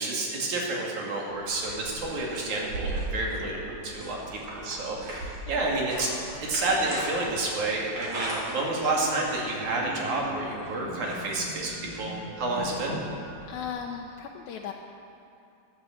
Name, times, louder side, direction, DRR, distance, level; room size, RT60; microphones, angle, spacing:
voice 1, 0.0-6.1 6.4-13.0, right 2 dB, 80° right, -2 dB, 3.9 m, -30 dB
sound 1, 1.3-13.7, right 1 dB, 60° right, 4.2 m, -38 dB
voice 2, 13.5-14.7, left 7 dB, 80° left, 1 dB, 2.2 m, -37 dB
12.5 x 11.5 x 7.9 m, 2.8 s
omnidirectional pair, 3.3 m